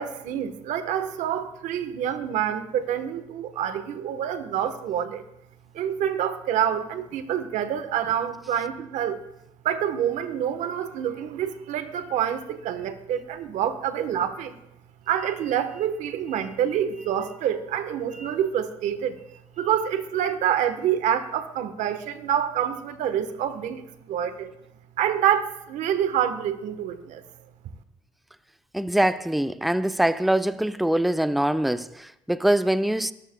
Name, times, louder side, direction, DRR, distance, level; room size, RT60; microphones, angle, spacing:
voice 1, 0.0-5.2 5.7-9.2 9.6-14.6 15.1-19.2 19.6-24.5 25.0-27.2, right 9 dB, 70° right, 1.1 m, -27 dB
voice 2, 28.7-33.1, right 1 dB, ahead, 0.5 m, -23 dB
21.0 x 14.0 x 2.2 m
supercardioid pair, 80°, 13 cm